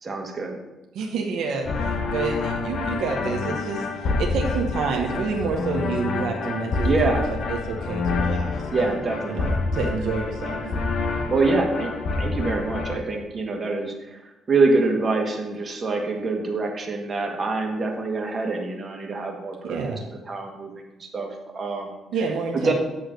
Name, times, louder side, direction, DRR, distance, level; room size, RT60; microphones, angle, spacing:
voice 1, 0.0-0.6 6.8-7.2 8.7-9.6 10.0-10.1 10.6-10.8 11.3-11.9 12.2-19.8 20.3-21.3 21.5-21.9 22.6-22.7, right 3 dB, 35° right, 2 dB, 1.4 m, -25 dB
voice 2, 0.9-7.2 7.5-10.6 19.6-20.1 22.1-22.7, right 4 dB, 85° right, 1 dB, 0.8 m, -29 dB
sound 1, 1.7-13.0, left 4 dB, 60° left, 0.8 m, -27 dB
8.6 x 3.1 x 6.4 m, 1.0 s
cardioid pair, 90°, 0 cm